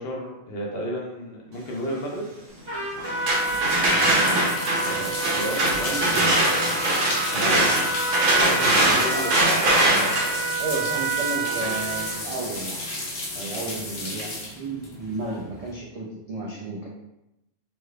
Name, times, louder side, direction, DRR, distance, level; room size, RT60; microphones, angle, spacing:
voice 1, 0.0-2.3 4.9-7.0 7.3-7.6 8.3-9.6 13.3-14.1, equal, 60° left, -1 dB, 0.8 m, -33 dB
sound 1, 2.5-15.7, left 2 dB, 85° left, 1.2 m, -34 dB
Trumpet, 2.7-12.2, right 2 dB, 25° right, 1.0 m, -29 dB
sound 2, 3.0-12.8, right 2 dB, 85° right, 1.1 m, -23 dB
voice 2, 3.8-4.6 9.1-9.2 10.6-12.8 13.4-14.3 14.6-16.9, right 2 dB, 65° right, -4 dB, 0.3 m, -33 dB
3.2 x 3.1 x 2.3 m, 0.88 s
omnidirectional pair, 1.3 m